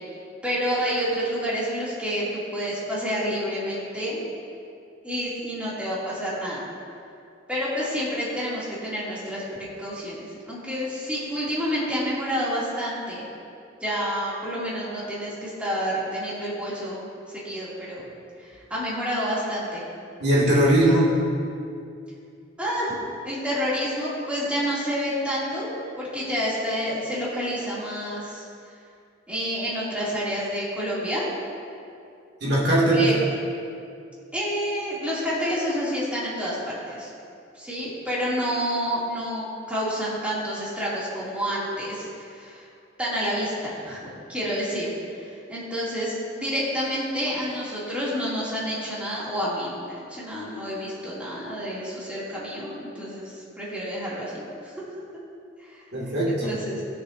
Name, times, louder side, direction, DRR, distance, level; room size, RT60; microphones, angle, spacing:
voice 1, 0.4-4.3 5.0-6.6 7.5-9.4 9.8-13.3 13.8-18.0 18.4-19.8 22.6-22.9 23.2-25.7 26.0-28.5 29.3-31.2 32.9-33.2 34.3-37.1 37.5-42.6 43.0-44.0 44.3-44.9 45.5-54.8 55.6-55.8 56.4-56.8, equal, 5° right, -9 dB, 2.6 m, -29 dB
voice 2, 20.2-21.1 32.4-33.1 55.9-56.5, right 1 dB, 65° right, -6 dB, 2.4 m, -20 dB
19.5 x 6.7 x 2.7 m, 2.5 s
head